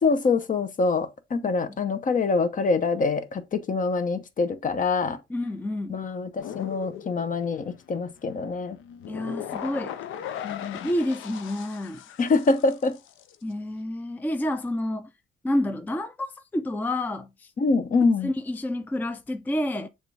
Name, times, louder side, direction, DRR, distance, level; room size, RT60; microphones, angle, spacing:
voice 1, 0.0-5.2 5.9-8.8 10.4-10.8 12.2-13.0 17.6-18.3, left 4 dB, 40° left, 0.7 m, -25 dB
voice 2, 5.3-6.0 9.1-10.0 10.8-12.0 13.4-15.1 15.4-17.5 18.2-19.9, left 1 dB, 10° left, 0.4 m, -29 dB
sound 1, 6.4-13.4, left 10 dB, 80° left, 0.5 m, -39 dB
6.5 x 2.4 x 3.3 m
cardioid pair, 90°, 20 cm